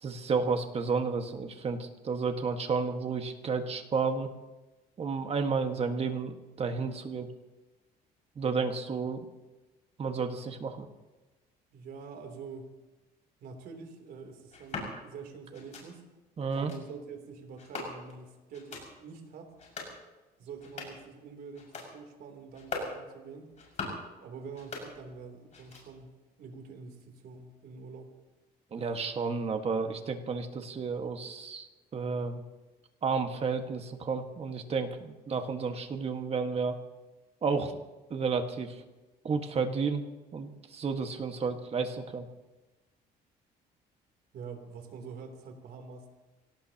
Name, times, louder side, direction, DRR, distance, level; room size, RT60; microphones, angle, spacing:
voice 1, 0.0-4.3 5.0-7.3 8.3-9.2 10.0-10.9 16.4-16.7 28.7-31.7 31.9-32.4 33.0-36.8 37.4-37.8 38.1-38.8 39.2-40.0 40.3-42.2, right 5 dB, 35° right, 5 dB, 1.7 m, -31 dB
voice 2, 11.7-12.7 13.4-16.0 16.5-19.5 20.4-23.5 24.2-28.1 34.9-35.1 44.3-46.1, right 5 dB, 65° right, 4 dB, 3.3 m, -46 dB
sound 1, 14.5-14.9 15.5-15.9 16.5-16.8 17.6-18.2 18.5-18.9 19.5-20.0 20.5-21.1 21.5-21.9 22.5-23.0 23.5-24.1 24.5-25.2 25.5-26.1, left 3 dB, 45° left, 6.2 m, -41 dB
25.0 x 18.0 x 3.0 m, 1.1 s
cardioid pair, 110°, 17 cm